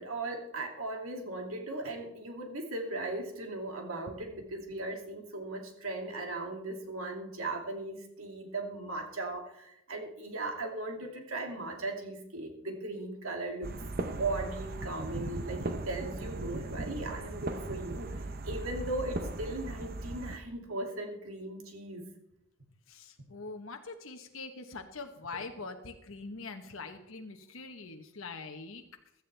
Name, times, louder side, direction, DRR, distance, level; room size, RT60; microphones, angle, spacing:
voice 1, 0.0-13.7 14.2-22.1, right 2 dB, 85° right, 2 dB, 2.5 m, -38 dB
sound 1, 13.6-20.4, right 2 dB, 45° right, 0.8 m, -38 dB
voice 2, 22.9-28.8, left 3 dB, 75° left, 5 dB, 1.1 m, -43 dB
16.0 x 13.0 x 3.4 m, 0.80 s
head